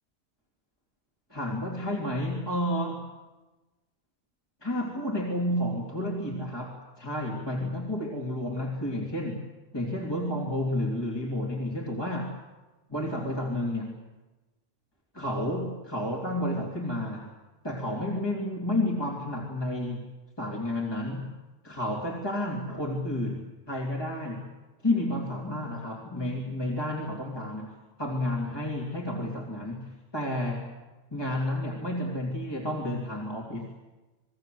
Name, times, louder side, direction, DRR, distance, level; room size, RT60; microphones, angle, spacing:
voice 1, 1.3-3.1 4.6-9.4 9.7-12.3 12.9-13.9 15.1-17.3 17.6-20.1 20.4-21.3 21.6-24.4 24.8-27.7 28.0-30.7 31.1-33.7, left 1 dB, 20° left, -2 dB, 3.2 m, -31 dB
29.0 x 20.5 x 7.9 m, 1.1 s
omnidirectional pair, 1.2 m